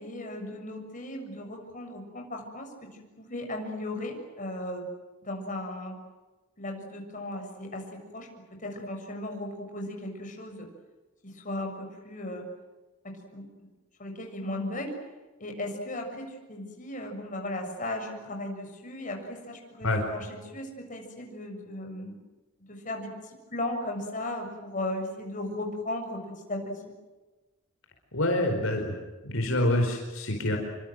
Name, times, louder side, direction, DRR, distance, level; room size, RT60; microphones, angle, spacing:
voice 1, 0.0-2.9 3.2-4.9 5.2-5.9 6.6-7.8 8.1-8.3 8.6-10.7 11.2-12.4 13.0-13.7 14.0-15.0 15.4-22.2 22.7-23.1 23.5-26.9, left 1 dB, 40° left, 3 dB, 6.9 m, -36 dB
voice 2, 28.1-28.9 29.2-30.6, left 1 dB, 65° left, 2 dB, 4.7 m, -26 dB
28.0 x 25.0 x 7.8 m, 1.2 s
head